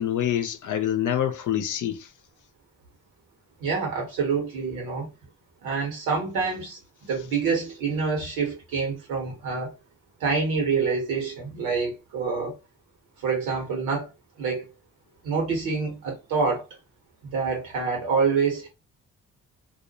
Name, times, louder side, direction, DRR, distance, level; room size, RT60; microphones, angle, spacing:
voice 1, 0.0-2.1, left 10 dB, 55° left, 0.6 m, -26 dB
voice 2, 3.6-5.1 5.6-9.7 10.2-12.5 13.2-14.1 14.4-14.7 15.2-16.6 17.3-18.7, right 5 dB, 80° right, 1.1 m, -27 dB
2.4 x 2.1 x 2.7 m
hypercardioid pair, 40°, 37 cm